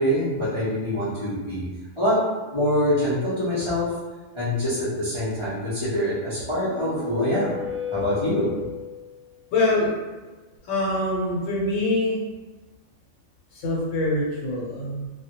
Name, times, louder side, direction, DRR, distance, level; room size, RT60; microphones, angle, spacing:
voice 1, 0.0-1.6 2.0-2.2 2.4-3.9 4.3-7.5 7.9-8.7, equal, 35° left, -12 dB, 0.5 m, -25 dB
sound 1, 6.3-9.1, left 8 dB, 70° right, 0.8 m, -34 dB
voice 2, 9.5-9.9 10.7-12.1 13.6-15.1, left 2 dB, 75° left, -4 dB, 0.9 m, -24 dB
2.1 x 2.1 x 2.7 m, 1.2 s
omnidirectional pair, 1.3 m